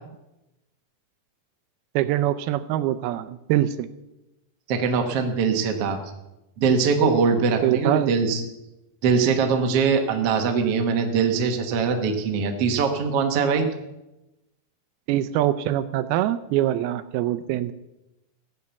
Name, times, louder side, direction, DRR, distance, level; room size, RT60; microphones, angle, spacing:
voice 1, 2.0-3.9 7.6-8.1 15.1-17.7, right 13 dB, 80° right, 12 dB, 2.4 m, -24 dB
voice 2, 4.7-6.0 6.6-8.4 9.0-13.7, right 5 dB, 65° right, 4 dB, 1.5 m, -22 dB
15.5 x 9.6 x 7.0 m, 0.95 s
omnidirectional pair, 4.7 m